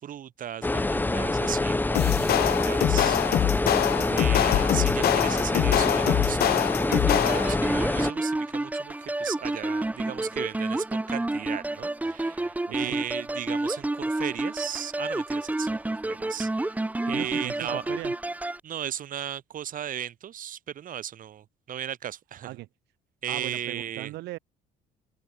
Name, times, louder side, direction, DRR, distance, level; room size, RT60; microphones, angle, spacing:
voice 1, 0.0-3.2 4.1-15.8 16.1-17.9 18.6-22.6 23.2-24.1, right 10 dB, 55° right, 3.6 m, -36 dB
sound 1, 0.6-8.1, left 2 dB, 10° left, 1.3 m, -26 dB
sound 2, 1.9-7.7, left 13 dB, 65° left, 1.7 m, -24 dB
voice 2, 3.9-4.3 12.7-13.0 17.1-18.1 22.4-22.7 23.3-24.4, right 18 dB, 85° right, 2.0 m, -38 dB
sound 3, 6.9-18.6, right 2 dB, 10° right, 1.0 m, -30 dB
cardioid pair, 110°, 17 cm